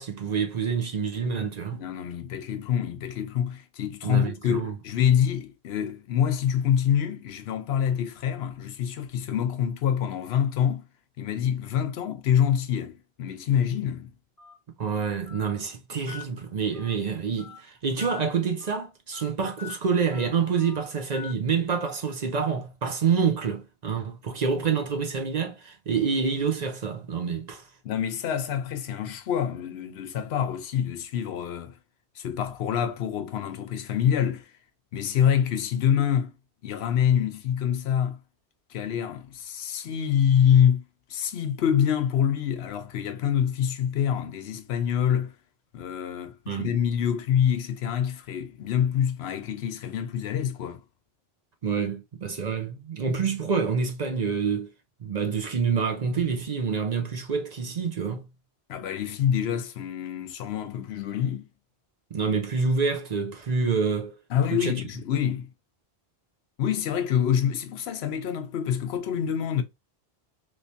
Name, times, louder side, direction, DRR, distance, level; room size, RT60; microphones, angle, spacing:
voice 1, 0.0-1.8 4.0-4.7 14.8-27.7 46.5-46.7 51.6-54.7 55.0-58.3 62.1-64.2 64.5-64.7, right 5 dB, 50° right, 0.6 m, -27 dB
voice 2, 1.7-10.8 11.2-14.1 27.8-31.8 32.2-34.5 34.9-36.3 36.6-38.2 38.7-40.8 41.1-45.3 45.7-50.8 58.7-61.4 64.3-65.5 66.6-69.6, left 9 dB, 90° left, 0.9 m, -26 dB
Telephone, 14.4-14.5 15.3-15.4 16.1-16.2 16.7-17.0 17.4-17.6 18.0-18.2 18.6-18.8 19.1-19.3 19.6-19.8 20.1-20.3 20.6-20.8 21.1-21.3, left 8 dB, 20° left, 0.8 m, -42 dB
3.2 x 3.2 x 2.7 m
omnidirectional pair, 1.1 m